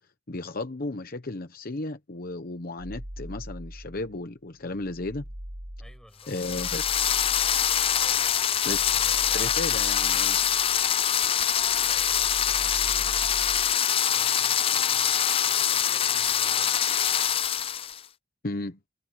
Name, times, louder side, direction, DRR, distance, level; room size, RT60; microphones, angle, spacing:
voice 1, 0.3-5.2 6.3-6.8 8.6-8.8 9.3-10.4 18.4-18.8, left 2 dB, 50° left, 1.0 m, -34 dB
sound 1, 2.8-4.2 4.6-11.2 11.5-13.8, equal, 55° right, 3.5 m, -41 dB
voice 2, 5.8-6.8 7.9-10.3 11.8-13.2 14.1-16.9, equal, 5° left, 5.9 m, -54 dB
sound 2, 6.3-18.0, left 9 dB, 30° left, 0.4 m, -24 dB
head